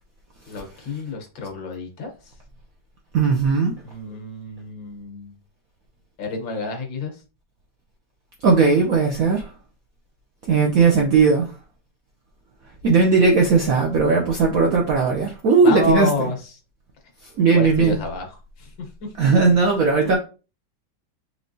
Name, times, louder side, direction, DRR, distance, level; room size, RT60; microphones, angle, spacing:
voice 1, 0.5-2.1 3.8-5.3 6.2-7.1 15.6-16.4 17.5-18.7, left 3 dB, 70° left, 1.8 m, -29 dB
voice 2, 3.1-3.7 8.4-9.5 10.5-11.5 12.8-16.3 17.4-18.0 19.2-20.2, right 4 dB, 70° right, 0.8 m, -17 dB
4.5 x 3.2 x 2.6 m
omnidirectional pair, 2.2 m